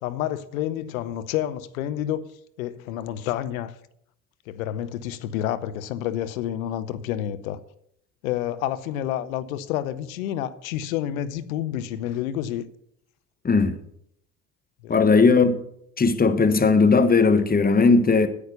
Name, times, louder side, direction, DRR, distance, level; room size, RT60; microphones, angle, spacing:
voice 1, 0.0-2.2 2.6-3.7 4.5-7.6 8.2-12.7 14.8-15.2, left 11 dB, 75° left, 0.8 m, -29 dB
voice 2, 13.4-13.8 14.9-15.6 16.0-18.3, left 4 dB, 20° left, 1.3 m, -18 dB
9.8 x 8.3 x 6.7 m
hypercardioid pair, 60°, 41 cm